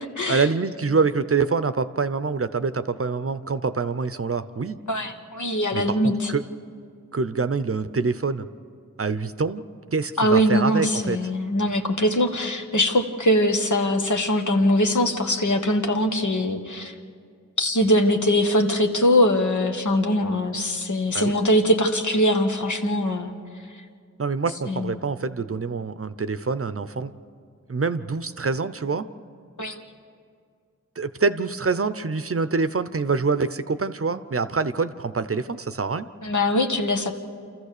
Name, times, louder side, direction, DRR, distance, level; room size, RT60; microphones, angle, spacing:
voice 1, 0.3-4.8 5.7-6.4 7.1-8.5 9.0-9.6 9.9-11.2 21.1-21.4 24.2-27.1 27.7-29.1 31.0-36.1, right 4 dB, 45° right, 12 dB, 0.7 m, -25 dB
voice 2, 4.9-6.3 10.2-16.9 17.6-23.3 24.7-25.0 29.6-29.8 36.2-37.1, left 1 dB, 70° left, 4 dB, 1.4 m, -22 dB
27.5 x 14.5 x 6.7 m, 2.2 s
wide cardioid pair, 55°, 30 cm